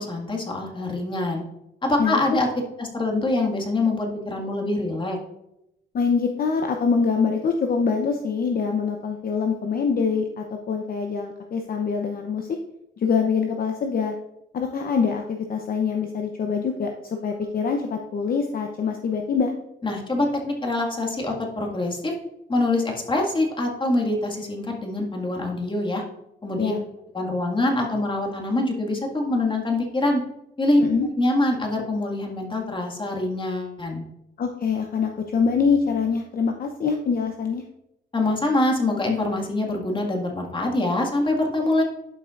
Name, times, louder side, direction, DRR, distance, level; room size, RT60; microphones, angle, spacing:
voice 1, 0.0-1.4 1.8-2.5 2.8-5.2 19.8-22.1 22.5-26.0 26.4-26.7 27.1-30.2 30.6-30.8 31.2-34.0 38.1-41.8, left 2 dB, 25° left, 0 dB, 1.9 m, -24 dB
voice 2, 5.9-12.5 13.0-14.1 14.5-16.9 17.2-19.5 26.6-26.8 30.8-31.1 34.4-37.6, left 5 dB, 45° left, 4 dB, 0.7 m, -24 dB
11.0 x 5.7 x 2.5 m, 0.85 s
cardioid pair, 90°, 20 cm